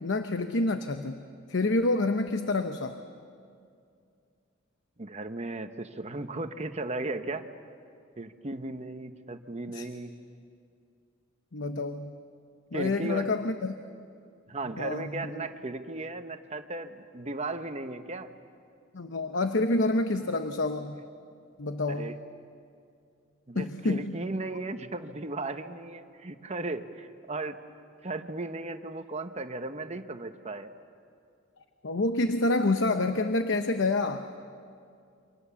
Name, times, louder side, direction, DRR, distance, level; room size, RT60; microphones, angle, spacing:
voice 1, 0.0-3.0 9.7-9.9 11.5-12.1 12.7-13.8 14.8-15.5 18.9-21.0 21.6-22.2 23.5-24.2 31.8-34.3, left 2 dB, 65° left, 8 dB, 0.9 m, -28 dB
voice 2, 5.0-7.5 8.2-10.1 12.7-13.3 14.5-18.3 21.9-22.1 23.5-27.6 28.0-30.7, right 2 dB, 35° right, 8 dB, 1.1 m, -36 dB
29.0 x 25.5 x 7.1 m, 2.4 s
head